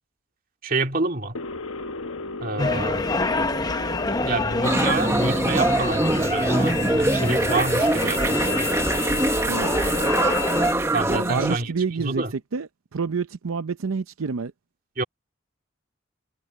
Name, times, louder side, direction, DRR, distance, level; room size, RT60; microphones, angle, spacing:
voice 1, 0.6-1.4 2.4-3.1 4.2-8.7 10.9-11.7 12.0-12.3 15.0-15.1, right 3 dB, 45° right, 2.6 m, -28 dB
sound 1, 1.3-12.2, left 2 dB, 85° left, 1.2 m, -37 dB
sound 2, 2.6-10.7, left 3 dB, 20° left, 0.7 m, -27 dB
sound 3, 4.6-11.6, right 1 dB, 15° right, 1.0 m, -23 dB
voice 2, 11.1-12.2 12.5-14.5, right 5 dB, 85° right, 0.6 m, -28 dB
head